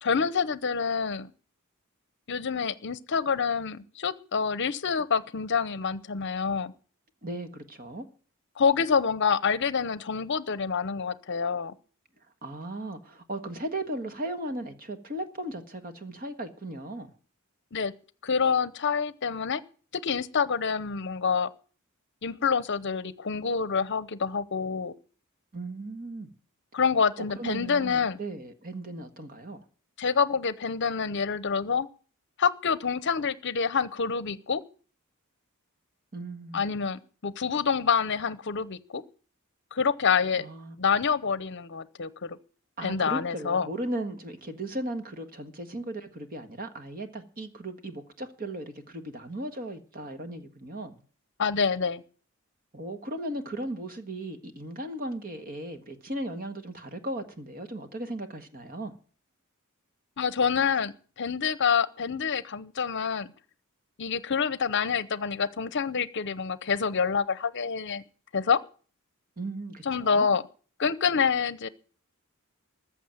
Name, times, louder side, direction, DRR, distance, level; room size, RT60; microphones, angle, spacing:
voice 1, 0.0-1.3 2.3-6.7 8.6-11.7 17.7-17.9 18.2-19.6 19.9-21.5 22.2-24.9 26.7-28.2 30.0-31.9 32.4-34.6 36.5-39.0 39.7-40.4 40.8-42.4 42.8-43.7 51.4-52.0 60.2-63.3 64.0-68.0 68.3-68.6 69.9-70.4 70.8-71.7, left 6 dB, 55° left, 0.7 m, -27 dB
voice 2, 7.2-8.1 12.4-17.1 25.5-26.3 27.3-29.6 36.1-36.6 40.3-40.8 42.8-51.0 52.7-58.9 69.4-70.3, right 1 dB, 40° right, 1.5 m, -37 dB
14.5 x 6.7 x 9.1 m
head